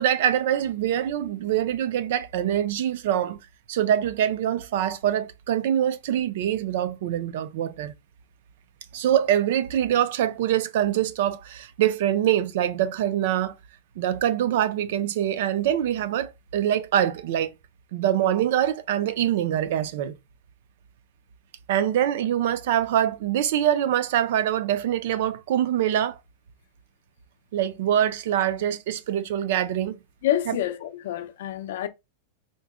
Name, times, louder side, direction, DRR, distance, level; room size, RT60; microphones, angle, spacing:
voice 1, 0.0-3.4 3.7-7.9 8.9-13.6 14.0-17.5 17.9-20.2 21.7-26.2 27.5-30.0 30.5-30.6, right 10 dB, 50° right, 0.4 m, -24 dB
voice 2, 30.2-31.9, left 12 dB, 55° left, 0.5 m, -27 dB
3.8 x 2.0 x 3.5 m
supercardioid pair, 175°, 0 cm